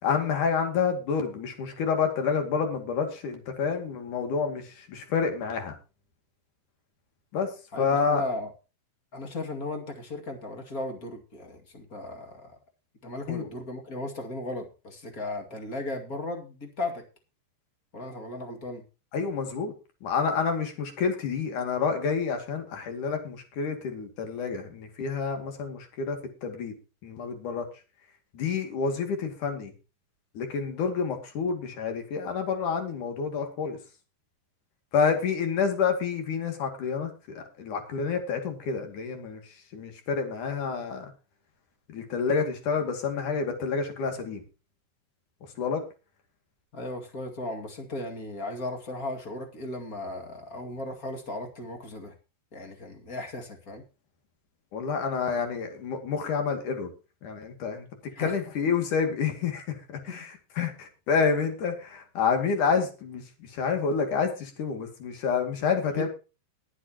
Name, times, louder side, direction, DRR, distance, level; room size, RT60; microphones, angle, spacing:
voice 1, 0.0-5.7 7.3-7.5 7.8-8.2 13.3-13.5 19.1-19.7 20.0-26.7 27.0-27.7 28.3-29.7 30.3-33.8 34.9-41.1 41.9-44.4 45.6-45.8 54.7-56.9 57.2-60.3 60.6-66.1, left 5 dB, 50° left, 5 dB, 3.6 m, -28 dB
voice 2, 7.7-8.5 9.1-12.6 13.0-17.0 17.9-18.8 46.7-52.1 52.5-53.8 58.1-58.3 60.1-60.2 65.9-66.1, left 2 dB, 35° left, 3 dB, 1.5 m, -36 dB
21.0 x 8.2 x 3.0 m, 0.32 s
omnidirectional pair, 5.1 m